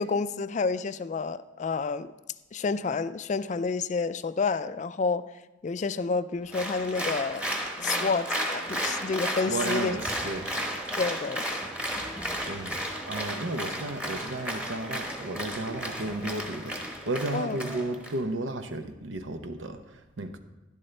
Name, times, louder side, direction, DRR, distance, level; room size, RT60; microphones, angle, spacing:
voice 1, 0.0-2.1 2.5-5.3 5.6-7.4 7.8-10.0 11.0-11.4 17.3-17.6, left 4 dB, 40° left, 0.3 m, -29 dB
Applause, 6.5-18.1, equal, 5° right, 1.1 m, -33 dB
voice 2, 9.5-10.5 12.4-20.4, right 2 dB, 80° right, 0.8 m, -33 dB
12.0 x 11.0 x 3.3 m
head